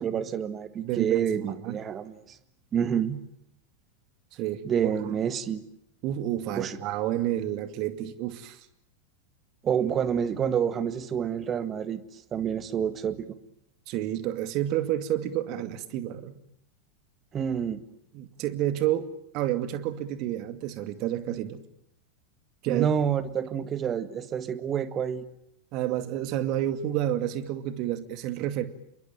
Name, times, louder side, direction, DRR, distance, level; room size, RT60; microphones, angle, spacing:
voice 1, 0.0-2.4 2.7-3.2 4.6-5.6 6.5-6.8 9.6-13.3 17.3-17.8 22.7-25.3, right 8 dB, 25° right, 12 dB, 1.9 m, -28 dB
voice 2, 0.8-1.8 4.4-5.2 6.0-8.6 13.9-16.4 18.1-19.1 19.3-21.6 22.6-22.9 25.7-28.6, right 12 dB, 40° right, 11 dB, 2.4 m, -30 dB
28.5 x 22.5 x 9.2 m, 0.77 s
figure-of-eight pair, 90°, 0 cm